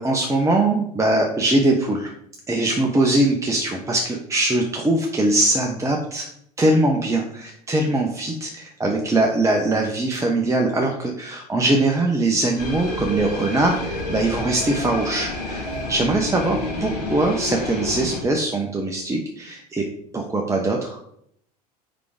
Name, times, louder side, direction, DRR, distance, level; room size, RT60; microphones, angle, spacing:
voice 1, 0.0-2.1 2.5-6.3 6.6-15.6 15.9-19.8 20.1-21.0, right 2 dB, 15° right, 1 dB, 1.3 m, -21 dB
sound 1, 12.6-18.2, left 2 dB, 85° left, 3.3 m, -29 dB
7.5 x 4.9 x 5.1 m, 0.72 s
figure-of-eight pair, 65°, 20 cm